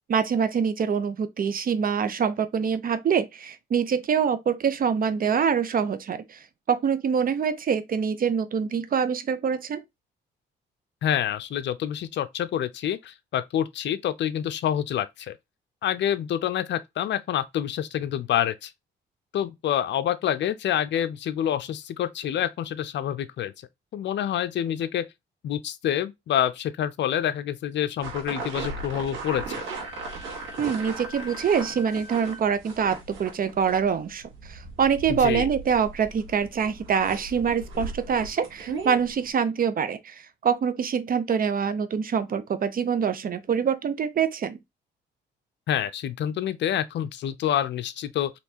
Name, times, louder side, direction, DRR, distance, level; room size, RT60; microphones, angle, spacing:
voice 1, 0.1-6.4 6.7-9.8 30.6-44.6, right 7 dB, 45° right, 0.7 m, -25 dB
voice 2, 11.0-15.3 15.8-18.7 19.3-23.5 23.9-25.1 25.4-29.6 35.1-35.5 45.7-48.3, left 10 dB, 65° left, 0.6 m, -27 dB
sound 1, 28.0-39.3, right 3 dB, 85° right, 2.0 m, -37 dB
Wind instrument woodwind instrument, 29.6-32.4, left 3 dB, 40° left, 1.2 m, -44 dB
4.3 x 3.1 x 2.8 m
cardioid pair, 90°, 20 cm